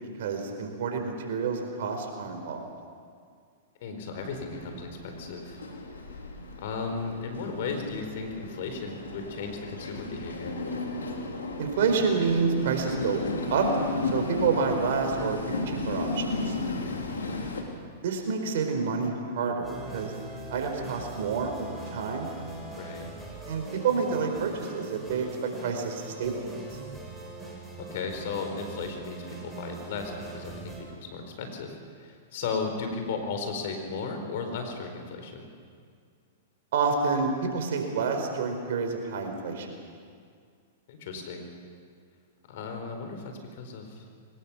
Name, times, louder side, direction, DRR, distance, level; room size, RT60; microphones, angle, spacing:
voice 1, 0.2-2.6 6.4-6.5 11.6-13.2 13.5-13.7 14.1-16.6 18.0-20.1 20.5-22.3 23.5-26.4 36.7-39.7, right 5 dB, 65° right, 4 dB, 4.6 m, -28 dB
voice 2, 3.8-5.6 6.6-10.6 16.8-17.5 22.8-23.1 27.9-35.5 40.9-41.5 42.5-44.0, left 4 dB, 60° left, 5 dB, 4.4 m, -35 dB
Train, 4.2-17.6, left 3 dB, 90° left, 3.1 m, -34 dB
sound 1, 19.6-30.8, right 2 dB, 5° right, 5.7 m, -42 dB
23.0 x 19.5 x 7.3 m, 2.1 s
hypercardioid pair, 115°, 0 cm